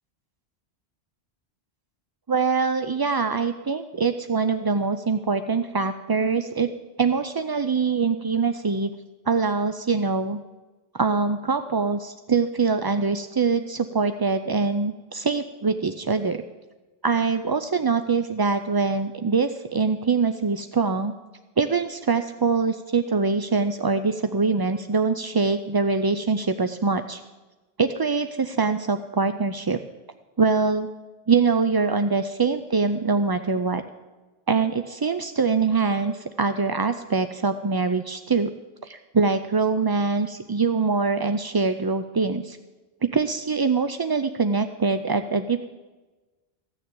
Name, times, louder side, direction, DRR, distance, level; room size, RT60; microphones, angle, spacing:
voice 1, 2.3-6.7 7.0-8.9 9.3-10.4 10.9-16.4 17.0-21.1 21.6-27.2 27.8-29.8 30.4-30.9 31.3-33.8 34.5-38.5 38.8-42.6 43.0-45.7, right 4 dB, 40° right, 9 dB, 0.3 m, -23 dB
15.0 x 6.7 x 9.3 m, 1.2 s
omnidirectional pair, 1.1 m